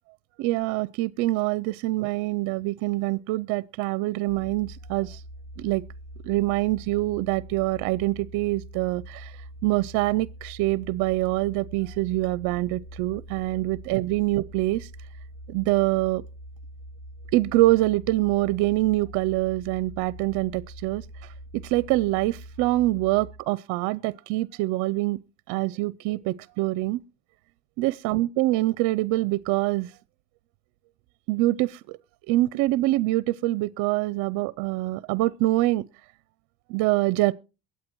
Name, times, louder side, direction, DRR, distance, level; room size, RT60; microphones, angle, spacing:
voice 1, 0.4-5.2 5.6-5.8 6.2-9.4 9.6-14.9 15.5-16.2 17.3-25.2 25.5-27.0 27.8-29.9 31.3-32.0 32.3-35.8 36.7-37.3, right 19 dB, 70° right, 0.5 m, -25 dB
sound 1, 4.3-23.4, right 1 dB, 50° left, 5.4 m, -43 dB
22.5 x 8.3 x 3.0 m
supercardioid pair, 95°, 32 cm